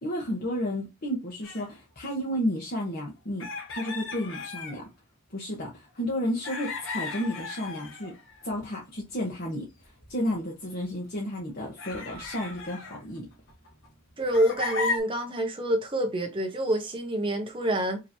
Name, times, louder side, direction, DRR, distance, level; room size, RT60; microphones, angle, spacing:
voice 1, 0.0-4.9 5.3-8.1 8.4-9.7 10.1-13.3, equal, 55° left, 1.1 m, -32 dB
sound 1, 1.4-1.7 3.4-4.8 6.4-8.7 9.8-10.1 10.8-10.9 11.8-13.9 14.3-15.0, left 4 dB, 80° left, 1.4 m, -35 dB
voice 2, 14.2-18.0, right 1 dB, 25° right, 1.0 m, -27 dB
5.0 x 3.0 x 2.7 m
head